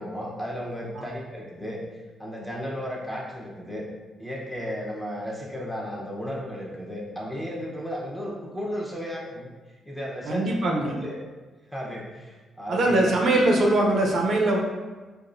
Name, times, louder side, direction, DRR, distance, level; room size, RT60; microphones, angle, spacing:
voice 1, 0.0-3.8 4.2-9.5 9.8-11.2 11.7-13.1, equal, 5° left, -4 dB, 0.9 m, -34 dB
voice 2, 10.3-10.9 12.7-14.6, right 1 dB, 60° right, 0 dB, 0.6 m, -22 dB
4.7 x 2.4 x 2.6 m, 1.3 s
cardioid pair, 90°, 0 cm